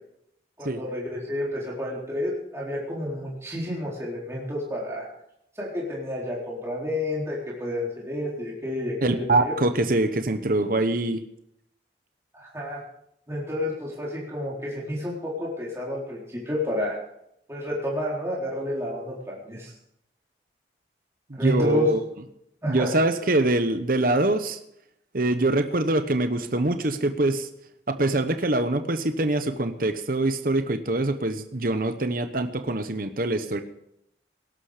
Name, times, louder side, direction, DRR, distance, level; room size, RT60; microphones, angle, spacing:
voice 1, 0.6-5.1 5.6-9.5 12.3-12.8 13.3-17.0 17.5-19.7 21.3-21.9 22.6-22.9, left 1 dB, 15° right, -5 dB, 4.0 m, -30 dB
voice 2, 9.0-11.2 21.4-22.0 22.7-24.6 25.1-27.5 27.9-33.6, right 2 dB, 50° right, 9 dB, 1.1 m, -24 dB
18.5 x 12.0 x 5.1 m, 0.76 s
head